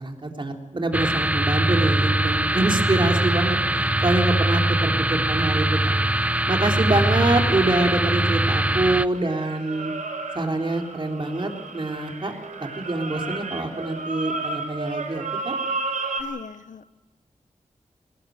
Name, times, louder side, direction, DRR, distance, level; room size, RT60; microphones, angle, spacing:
voice 1, 0.0-6.0 6.5-9.9 10.3-12.3 12.6-15.6, right 2 dB, 40° right, 2 dB, 3.6 m, -25 dB
sound 1, 0.9-9.1, right 1 dB, 10° right, 0.6 m, -22 dB
sound 2, 5.7-8.8 9.1-16.2, right 3 dB, 75° right, 3.7 m, -33 dB
voice 2, 16.2-17.0, left 6 dB, 75° left, 13 dB, 0.9 m, -39 dB
19.5 x 19.0 x 9.4 m, 1.2 s
wide cardioid pair, 70°, 13 cm